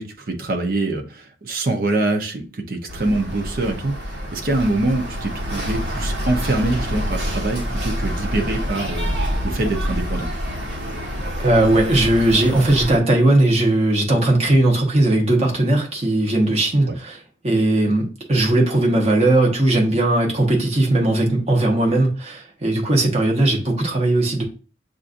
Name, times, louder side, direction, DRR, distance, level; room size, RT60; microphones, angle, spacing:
voice 1, 0.0-10.3 16.8-17.0, right 2 dB, 55° right, 3 dB, 0.7 m, -24 dB
sound 1, 2.9-13.0, equal, 80° right, 1.3 m, -27 dB
voice 2, 11.4-24.4, right 1 dB, 35° right, 0 dB, 1.1 m, -18 dB
7.1 x 2.6 x 2.5 m, 0.36 s
head